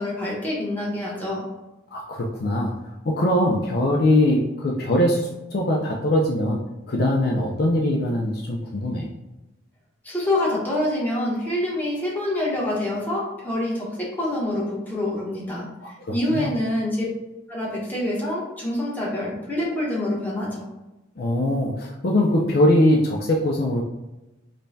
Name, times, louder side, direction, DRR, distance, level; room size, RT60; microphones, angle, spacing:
voice 1, 0.0-1.4 10.0-15.7 16.1-17.0 17.5-20.6, left 1 dB, 10° left, -6 dB, 1.0 m, -26 dB
voice 2, 1.9-2.7 3.1-6.6 6.9-9.1 15.8-16.5 21.2-23.8, left 1 dB, 50° left, -1 dB, 0.4 m, -22 dB
5.2 x 2.2 x 2.7 m, 1.0 s
head